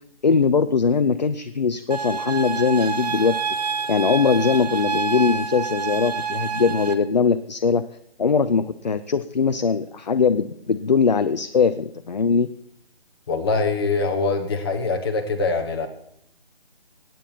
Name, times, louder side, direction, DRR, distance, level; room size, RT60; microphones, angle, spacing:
voice 1, 0.2-3.4 3.9-7.8 8.2-12.5, left 5 dB, 45° left, 10 dB, 0.6 m, -21 dB
sound 1, 1.9-6.9, right 5 dB, 40° right, 1.2 m, -27 dB
voice 2, 13.3-15.9, left 3 dB, 25° left, 3 dB, 1.3 m, -23 dB
18.0 x 9.2 x 4.4 m, 0.74 s
figure-of-eight pair, 155°, 31 cm